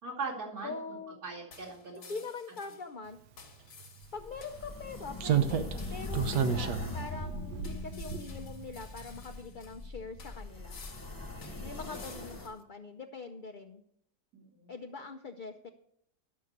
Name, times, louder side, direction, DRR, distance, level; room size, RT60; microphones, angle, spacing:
voice 1, 0.0-0.7 1.2-2.1 14.3-14.7, right 4 dB, 65° right, -2 dB, 3.0 m, -40 dB
voice 2, 0.6-1.2 1.9-3.2 4.1-10.8 11.6-13.8 14.7-15.7, left 4 dB, 55° left, 4 dB, 0.5 m, -43 dB
sound 1, 1.5-2.9 3.4-7.0 7.6-9.9 10.2-12.6, left 5 dB, 85° left, 2.2 m, -54 dB
Slam, 3.8-3.9 5.2-8.7 9.0-9.2, right 8 dB, 80° right, 1.4 m, -32 dB
sound 2, 4.0-12.5, left 2 dB, 15° left, 1.1 m, -41 dB
12.5 x 6.5 x 6.6 m, 0.73 s
omnidirectional pair, 1.7 m